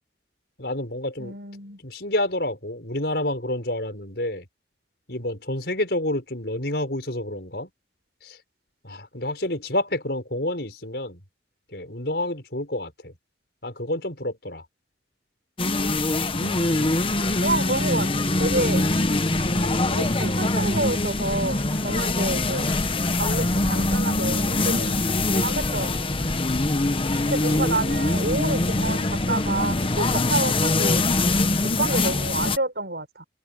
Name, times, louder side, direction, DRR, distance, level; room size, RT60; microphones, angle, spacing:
voice 1, 0.6-1.4 1.8-4.5 5.1-7.7 8.2-8.4 8.8-11.2 11.7-13.1 13.6-14.6 27.5-27.7, left 1 dB, 65° left, 6.5 m, -29 dB
voice 2, 1.2-1.8 16.4-17.0 17.4-18.1 18.4-18.9 19.9-22.8 23.2-25.0 25.3-26.1 27.2-31.0 31.6-33.3, right 2 dB, 65° right, 6.7 m, -29 dB
sound 1, 15.6-32.6, left 2 dB, 30° left, 1.1 m, -23 dB
head